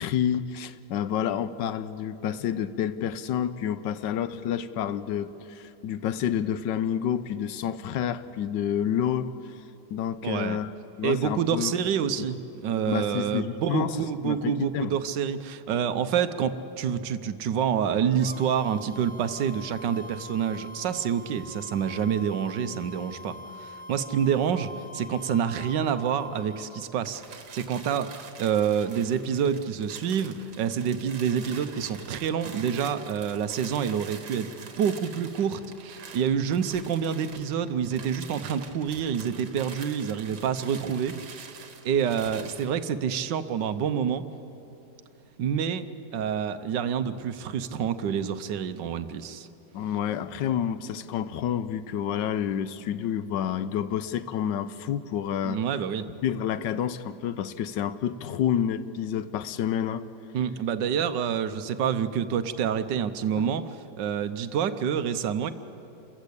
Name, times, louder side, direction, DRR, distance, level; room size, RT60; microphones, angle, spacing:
voice 1, 0.0-9.3 9.9-10.7 11.0-11.7 12.9-14.0 14.2-15.0 49.7-55.6 56.2-60.1 63.4-63.5, left 9 dB, 90° left, 13 dB, 1.4 m, -29 dB
voice 2, 10.2-10.6 11.0-44.2 45.4-49.5 55.4-56.1 60.3-65.5, right 8 dB, 80° right, 11 dB, 1.5 m, -28 dB
sound 1, 18.2-26.8, left 1 dB, 35° left, 0.5 m, -44 dB
sound 2, 27.0-42.7, right 5 dB, 65° right, 2.1 m, -46 dB
28.0 x 14.5 x 8.5 m, 3.0 s
omnidirectional pair, 1.9 m